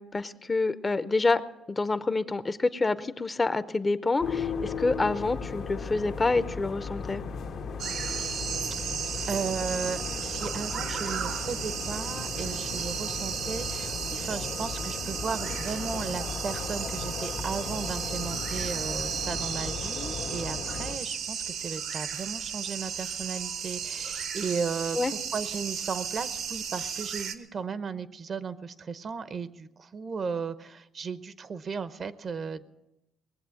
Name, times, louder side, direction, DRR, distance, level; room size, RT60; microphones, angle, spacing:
voice 1, 0.0-1.4 1.7-7.2 24.9-25.1, left 3 dB, 25° left, 13 dB, 0.7 m, -27 dB
sound 1, 4.2-21.0, left 5 dB, 70° left, 1.3 m, -36 dB
sound 2, 7.8-27.3, right 7 dB, 75° right, 1.1 m, -34 dB
voice 2, 9.3-32.7, right 5 dB, 45° right, 13 dB, 0.8 m, -35 dB
20.0 x 7.8 x 7.6 m, 0.92 s
cardioid pair, 90°, 0 cm